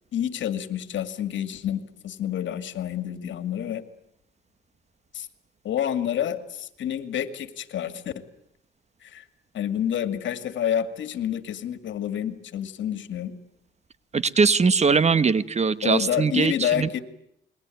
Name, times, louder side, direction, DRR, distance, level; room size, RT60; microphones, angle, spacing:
voice 1, 0.1-3.8 5.1-5.3 5.6-8.1 9.0-9.3 9.5-13.3 15.8-17.0, left 10 dB, 70° left, 11 dB, 2.3 m, -28 dB
voice 2, 14.1-16.9, right 5 dB, 35° right, 15 dB, 1.3 m, -21 dB
28.5 x 21.5 x 9.3 m, 0.76 s
cardioid pair, 90°, 20 cm